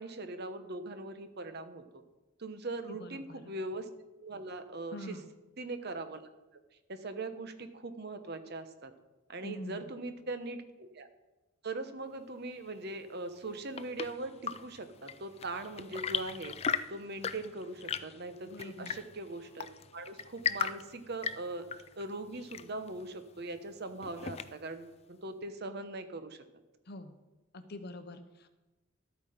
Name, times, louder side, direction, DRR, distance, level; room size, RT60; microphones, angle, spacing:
voice 1, 0.0-2.0 2.4-3.9 4.2-5.2 5.6-6.2 6.5-6.6 6.9-8.9 9.3-11.1 11.6-16.6 16.9-19.7 19.9-21.7 22.0-26.4, right 2 dB, 50° right, 9 dB, 1.0 m, -41 dB
voice 2, 2.9-3.4 4.9-5.3 9.4-10.0 18.4-19.0 26.9-27.1 27.5-28.5, left 1 dB, 50° left, 9 dB, 0.9 m, -45 dB
Chirp tweet / Engine / Tap, 13.3-24.8, left 7 dB, 30° left, 0.4 m, -39 dB
12.5 x 8.7 x 5.0 m, 1.1 s
head